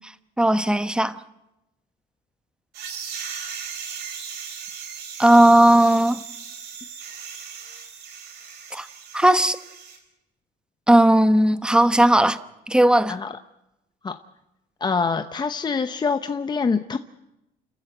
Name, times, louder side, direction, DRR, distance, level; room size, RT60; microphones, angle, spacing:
voice 1, 0.4-1.2 5.2-6.2 8.7-8.9 9.1-9.6 10.9-12.4 12.7-13.2, right 1 dB, 5° right, 1.0 m, -16 dB
sound 1, 2.7-10.0, right 7 dB, 80° right, 4.5 m, -37 dB
voice 2, 14.8-17.0, left 5 dB, 25° left, 0.8 m, -25 dB
29.5 x 14.0 x 7.9 m
cardioid pair, 110°, 17 cm